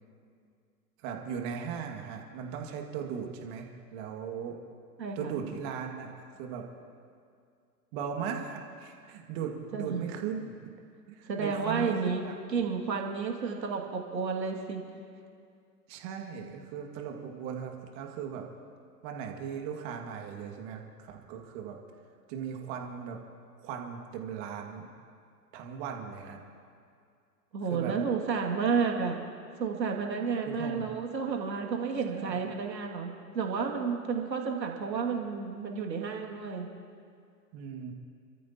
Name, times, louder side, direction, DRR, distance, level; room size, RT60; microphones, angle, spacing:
voice 1, 1.0-4.6 5.2-6.1 6.4-6.7 7.9-10.6 11.1-12.3 15.9-18.5 19.0-21.8 22.3-23.2 23.6-24.9 25.5-26.4 27.7-27.9 30.5-30.9 31.2-31.4 32.1-32.4 37.5-37.9, right 7 dB, 40° right, 2 dB, 2.1 m, -38 dB
voice 2, 5.0-5.3 9.7-10.1 11.3-12.2 12.5-14.8 27.5-29.2 29.6-36.7, right 5 dB, 80° right, 1 dB, 2.5 m, -31 dB
29.0 x 14.0 x 2.9 m, 2.3 s
hypercardioid pair, 115°, 50 cm